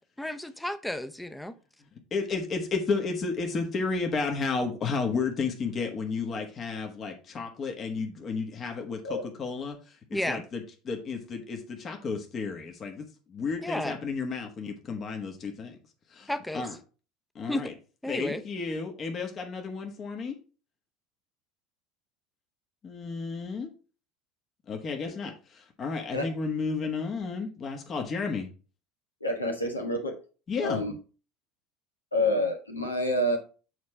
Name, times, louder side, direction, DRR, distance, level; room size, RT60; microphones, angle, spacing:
voice 1, 0.2-1.6 10.1-10.4 13.6-14.0 16.3-16.6 17.5-17.6 18.0-18.4, left 1 dB, 5° left, 10 dB, 0.8 m, -32 dB
voice 2, 2.1-15.8 16.1-16.8 17.3-17.7 18.0-20.4 22.8-23.7 24.7-28.5 30.5-30.8, left 4 dB, 35° left, 3 dB, 1.3 m, -32 dB
voice 3, 29.2-30.1 30.6-30.9 32.1-33.4, left 1 dB, 85° left, 3 dB, 1.5 m, -27 dB
8.0 x 4.3 x 4.8 m, 0.36 s
figure-of-eight pair, 70°, 0 cm